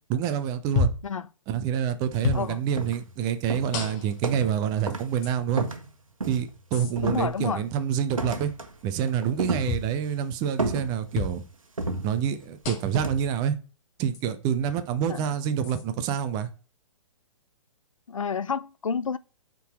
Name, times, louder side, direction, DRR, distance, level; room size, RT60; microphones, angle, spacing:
voice 1, 0.1-0.9 1.5-5.7 6.3-8.5 8.8-11.4 12.0-13.6 14.0-16.5, right 8 dB, 25° right, 0.6 m, -27 dB
sound 1, 0.8-1.1 2.2-2.5 3.7-4.2 5.2-5.3 6.7-6.9 9.7-9.9 11.1-11.4 12.6-13.0 14.1-14.2 15.6-15.8, left 3 dB, 30° left, 1.2 m, -29 dB
sound 2, 2.1-2.3 2.8-3.2 3.5-4.6 4.9-5.2 5.6-6.6 7.0-7.7 8.2-8.8 9.1-10.1 10.6-11.3 11.8-12.5 12.9-13.3, right 2 dB, 80° right, 1.2 m, -32 dB
voice 2, 7.0-7.6 15.1-15.3 18.1-19.2, left 6 dB, 75° left, 0.4 m, -29 dB
5.6 x 3.8 x 5.9 m
figure-of-eight pair, 120°, 17 cm